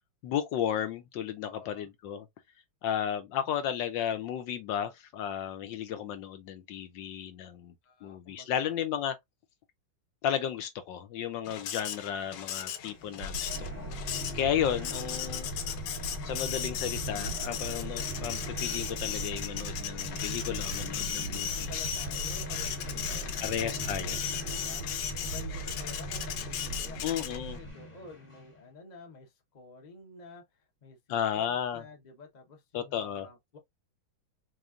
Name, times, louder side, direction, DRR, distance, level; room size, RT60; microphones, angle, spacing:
voice 1, 0.2-2.2 2.8-7.7 8.0-9.2 10.2-13.5 13.8-15.5 16.2-21.9 23.4-24.2 27.0-27.6 31.1-31.8 32.7-33.3, left 9 dB, 70° left, 1.2 m, -33 dB
voice 2, 1.4-1.9 7.8-8.7 21.5-33.6, left 4 dB, 35° left, 0.7 m, -51 dB
Printer, 11.5-27.6, left 9 dB, 90° left, 1.5 m, -37 dB
sound 1, 12.8-28.6, equal, 20° left, 1.0 m, -42 dB
sound 2, 13.2-27.7, right 2 dB, 60° right, 0.7 m, -40 dB
4.3 x 3.1 x 2.4 m
omnidirectional pair, 2.2 m